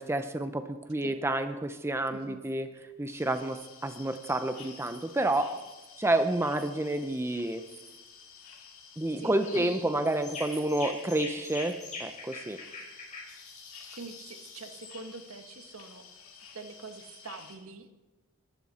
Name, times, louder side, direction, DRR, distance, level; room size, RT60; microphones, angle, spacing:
voice 1, 0.0-2.7 3.0-5.6 6.0-7.6 9.0-12.6, right 1 dB, 10° right, 9 dB, 0.6 m, -29 dB
voice 2, 2.1-2.4 9.2-9.7 13.8-16.1 16.5-17.9, right 3 dB, 75° right, 7 dB, 1.5 m, -44 dB
sound 1, 3.1-17.6, left 6 dB, 70° left, 2.7 m, -52 dB
sound 2, 9.4-9.8 10.2-14.9, left 3 dB, 35° left, 4.4 m, -43 dB
21.0 x 12.0 x 4.2 m, 1.1 s
head